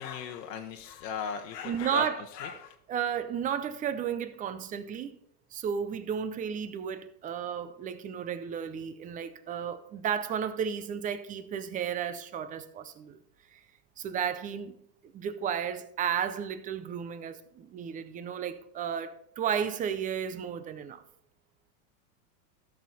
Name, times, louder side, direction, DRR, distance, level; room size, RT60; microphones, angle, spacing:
voice 1, 0.0-2.7, left 7 dB, 80° left, 1.1 m, -38 dB
voice 2, 1.6-2.2 2.9-5.1 5.5-13.2 13.5-13.6 14.0-14.8 15.1-21.0, right 8 dB, 15° right, 0.4 m, -33 dB
13.5 x 6.4 x 4.1 m
supercardioid pair, 125°, 49 cm